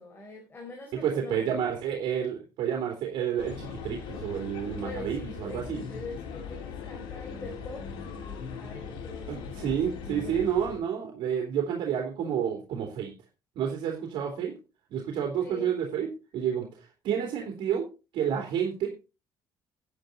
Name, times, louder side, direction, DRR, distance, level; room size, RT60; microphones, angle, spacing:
voice 1, 0.0-1.5 4.8-9.7 10.1-10.6 15.4-15.7, left 2 dB, 25° left, 1 dB, 4.0 m, -43 dB
voice 2, 0.9-5.8 9.3-13.1 13.5-14.5 14.9-16.1 16.3-16.7 17.0-17.8 18.1-18.9, right 8 dB, 75° right, 1 dB, 3.3 m, -30 dB
sound 1, 3.4-10.8, left 6 dB, 85° left, 3.4 m, -39 dB
10.5 x 9.9 x 4.1 m, 0.30 s
cardioid pair, 120°, 8 cm